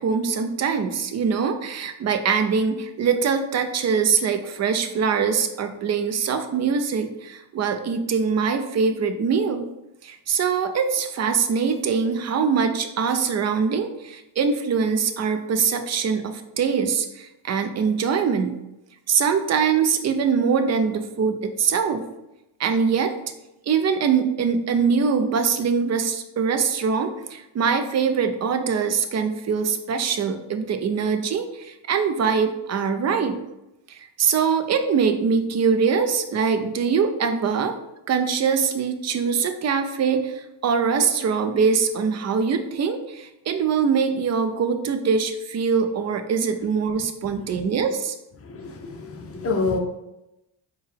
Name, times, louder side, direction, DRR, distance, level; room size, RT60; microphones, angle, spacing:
voice 1, 0.0-9.7 10.0-18.6 19.1-22.0 22.6-23.1 23.7-33.4 33.9-37.8 38.1-48.1, right 6 dB, 35° right, 7 dB, 0.4 m, -23 dB
voice 2, 48.4-49.8, left 4 dB, 30° left, 2 dB, 0.7 m, -27 dB
4.4 x 2.3 x 3.4 m, 0.92 s
cardioid pair, 95°, 50 cm